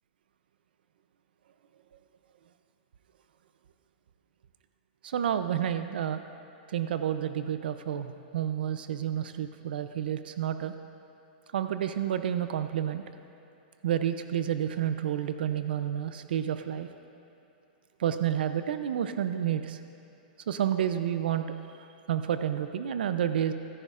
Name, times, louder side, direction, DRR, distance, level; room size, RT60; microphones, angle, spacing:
voice 1, 5.0-6.2 6.7-10.7 11.5-13.0 13.8-16.9 18.0-19.8 20.5-21.5 21.8-23.5, right 10 dB, 85° right, 10 dB, 0.5 m, -30 dB
16.0 x 14.5 x 2.5 m, 2.7 s
supercardioid pair, 160°, 5 cm